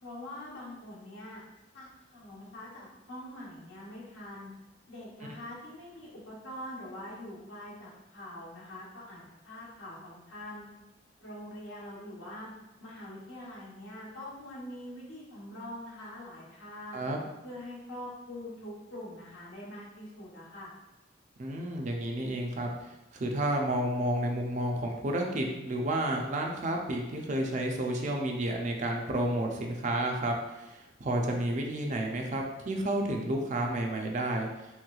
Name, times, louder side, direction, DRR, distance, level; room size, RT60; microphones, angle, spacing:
voice 1, 0.0-1.4 1.7-4.5 4.9-10.7 11.2-12.5 12.8-17.0 17.4-20.7, left 1 dB, 85° left, -6 dB, 1.0 m, -44 dB
voice 2, 21.4-22.7 23.1-34.5, right 1 dB, 40° right, 2 dB, 0.4 m, -31 dB
3.1 x 3.0 x 2.3 m, 1.0 s
head